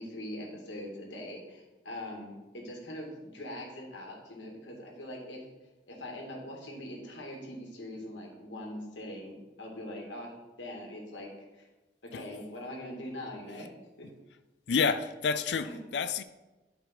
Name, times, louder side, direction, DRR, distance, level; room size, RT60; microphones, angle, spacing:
voice 1, 0.0-5.4 5.9-11.7 12.0-13.7 14.0-14.1 15.7-15.8, left 1 dB, 90° left, 2.0 m, -42 dB
voice 2, 14.7-16.2, left 5 dB, 70° left, 0.4 m, -29 dB
9.1 x 5.4 x 4.3 m
head